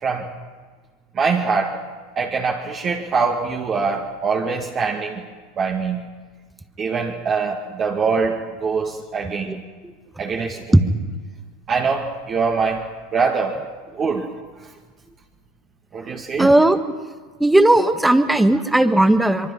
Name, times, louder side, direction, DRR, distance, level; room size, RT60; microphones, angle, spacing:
voice 1, 1.2-1.7 2.2-5.2 5.6-6.1 6.8-9.6 10.2-10.9 11.7-12.9 13.1-13.6 13.9-14.3 15.9-16.5, right 5 dB, 35° right, -1 dB, 2.3 m, -23 dB
voice 2, 16.4-16.8 17.4-19.5, right 1 dB, 5° right, 9 dB, 1.5 m, -16 dB
24.5 x 23.5 x 5.7 m, 1.5 s
hypercardioid pair, 90°, 0 cm